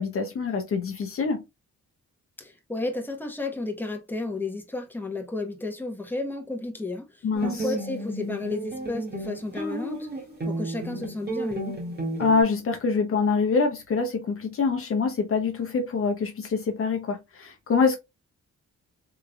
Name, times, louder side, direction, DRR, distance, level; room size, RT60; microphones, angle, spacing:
voice 1, 0.0-1.4 7.2-7.6 12.2-18.0, left 4 dB, 50° left, 0.7 m, -25 dB
voice 2, 2.4-10.1 10.5-11.8, left 2 dB, 5° left, 1.0 m, -32 dB
sound 1, 7.3-12.4, right 2 dB, 35° right, 1.7 m, -32 dB
3.7 x 3.2 x 2.3 m
cardioid pair, 105°, 29 cm